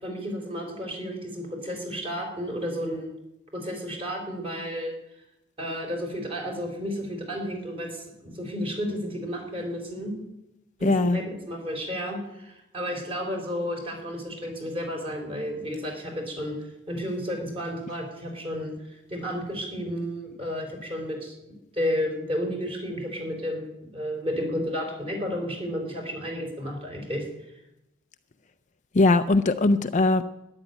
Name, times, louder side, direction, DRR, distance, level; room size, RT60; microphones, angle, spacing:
voice 1, 0.0-3.1 3.5-4.9 5.6-10.1 10.8-16.6 16.9-18.7 19.1-21.3 21.7-27.2, equal, 25° right, 2 dB, 3.9 m, -32 dB
voice 2, 10.8-11.2 28.9-30.2, left 2 dB, 35° left, 9 dB, 0.5 m, -20 dB
13.0 x 11.0 x 9.1 m, 0.91 s
head